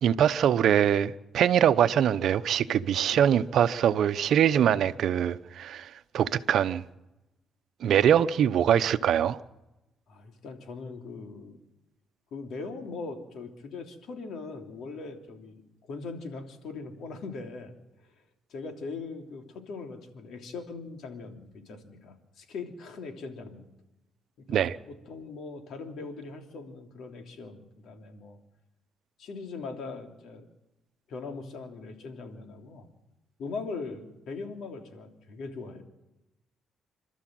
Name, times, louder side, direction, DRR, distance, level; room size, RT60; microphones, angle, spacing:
voice 1, 0.0-6.8 7.8-9.4 24.5-24.8, right 9 dB, 70° right, 0.8 m, -23 dB
voice 2, 10.1-11.6 12.3-15.6 15.9-17.7 18.5-23.6 24.4-28.4 29.2-30.4 31.1-32.9 33.4-35.8, left 4 dB, 75° left, 3.2 m, -40 dB
27.0 x 13.0 x 7.7 m
cardioid pair, 90°, 0 cm